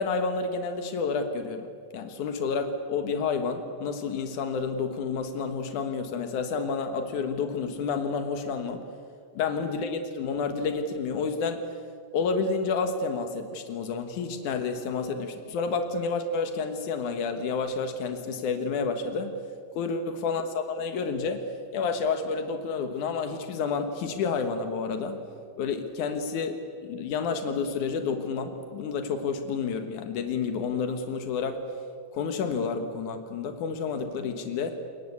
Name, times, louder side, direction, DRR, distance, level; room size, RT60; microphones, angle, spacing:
voice 1, 0.0-1.7 1.9-8.8 9.4-11.6 12.1-19.4 19.8-21.5 21.7-25.2 25.6-31.6 32.1-34.7, left 5 dB, 90° left, 7 dB, 2.9 m, -30 dB
27.5 x 22.0 x 8.5 m, 2.3 s
omnidirectional pair, 3.4 m